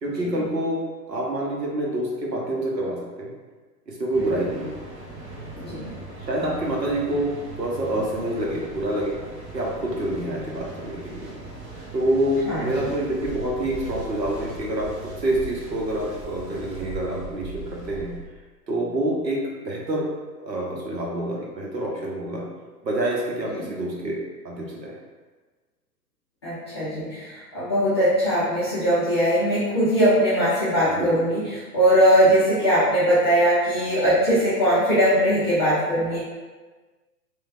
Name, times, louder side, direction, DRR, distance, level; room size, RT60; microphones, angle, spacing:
voice 1, 0.0-0.8 1.1-3.3 3.9-4.7 6.3-7.3 7.6-9.2 9.5-11.3 11.9-14.9 15.2-18.1 18.7-19.4 19.6-20.0 20.4-22.5 22.8-24.2 24.4-24.9 30.8-31.1, right 1 dB, 85° right, -2 dB, 0.8 m, -27 dB
Mechanical fan, 4.1-18.2, right 2 dB, 55° right, 0.9 m, -39 dB
voice 2, 5.6-5.9 12.5-12.9 23.5-23.6 26.4-31.4 31.7-36.2, equal, 20° left, -12 dB, 0.4 m, -20 dB
3.1 x 2.2 x 2.4 m, 1.3 s
figure-of-eight pair, 110°, 49 cm